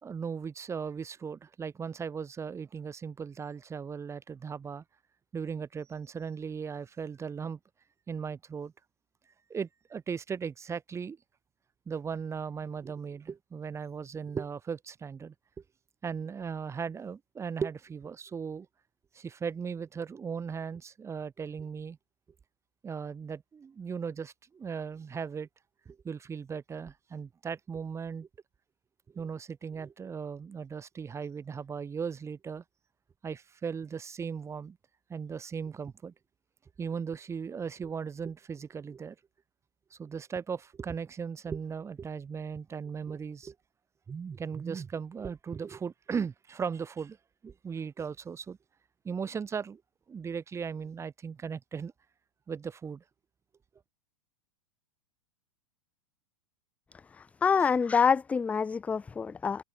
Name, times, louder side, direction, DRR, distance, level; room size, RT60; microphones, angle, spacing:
voice 1, 0.0-4.8 5.3-7.6 8.1-8.7 9.5-11.2 11.9-15.3 16.0-18.7 19.1-22.0 22.8-25.5 25.8-28.3 29.1-32.6 33.2-34.8 35.1-36.1 36.8-39.1 39.9-43.5 44.1-47.2 47.4-48.6 49.0-49.8 50.1-51.9 52.5-53.0 57.6-57.7, right 6 dB, 20° right, 3.4 m, -37 dB
voice 2, 57.4-59.6, left 6 dB, 10° left, 0.4 m, -26 dB
figure-of-eight pair, 95°, 15 cm